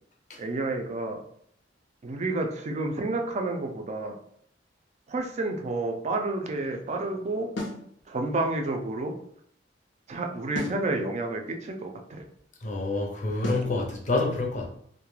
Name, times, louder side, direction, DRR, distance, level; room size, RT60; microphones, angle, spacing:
voice 1, 0.4-1.2 2.0-4.2 5.1-7.5 8.1-9.1 10.1-12.2, right 2 dB, 40° right, 3 dB, 0.4 m, -30 dB
sound 1, 7.6-7.9 10.5-10.9 13.4-13.7, left 1 dB, 85° left, 0.6 m, -33 dB
voice 2, 12.6-14.7, left 2 dB, 40° left, 1 dB, 0.5 m, -27 dB
2.3 x 2.1 x 3.1 m, 0.67 s
head